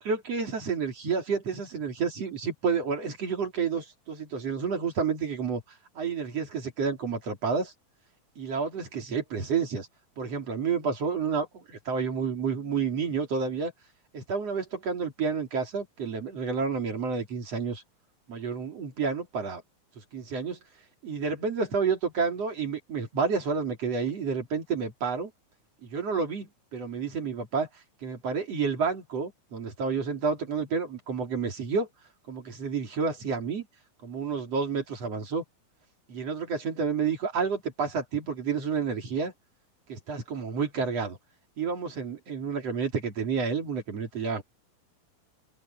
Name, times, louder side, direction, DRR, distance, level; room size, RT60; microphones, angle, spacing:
voice 1, 0.0-7.7 8.4-9.9 10.2-13.7 14.1-17.8 18.3-19.6 20.0-20.6 21.0-25.3 25.8-27.7 28.0-31.9 32.3-33.7 34.0-35.4 36.1-39.3 39.9-41.2 41.6-44.4, right 5 dB, 45° right, 4.1 m, -30 dB
open air
omnidirectional pair, 4.2 m